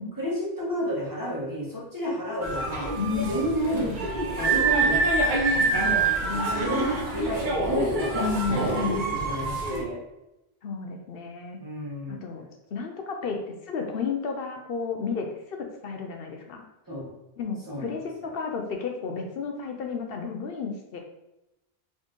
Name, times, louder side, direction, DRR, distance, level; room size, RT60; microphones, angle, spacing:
voice 1, 0.2-2.9 3.3-3.9 4.4-5.0 5.3-5.4 6.5-8.2 8.6-10.0 11.6-12.2 16.9-17.1 17.7-18.0, equal, 20° right, -6 dB, 1.4 m, -30 dB
sound 1, 2.4-9.8, right 3 dB, 55° right, 0.9 m, -26 dB
voice 2, 3.0-3.3 3.7-4.1 5.8-7.3 8.1-9.1 10.6-11.6 12.1-12.4 12.7-16.6 17.4-21.0, left 5 dB, 70° left, 3 dB, 0.8 m, -32 dB
4.3 x 3.7 x 3.1 m, 0.93 s
omnidirectional pair, 1.0 m